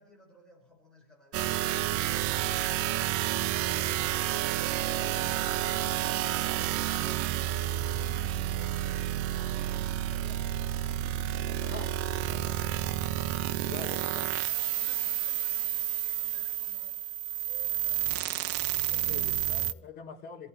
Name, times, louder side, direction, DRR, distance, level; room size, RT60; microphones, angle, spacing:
voice 1, 0.0-2.4 3.5-6.6 7.8-10.8 11.2-13.0 14.5-19.3, equal, ahead, 5.6 m, -57 dB
sound 1, 1.3-19.7, right 13 dB, 45° right, 0.7 m, -30 dB
voice 2, 11.6-12.0 13.6-14.3 19.1-20.5, left 7 dB, 30° left, 3.2 m, -44 dB
28.0 x 15.0 x 3.3 m
cardioid pair, 165°, 35 cm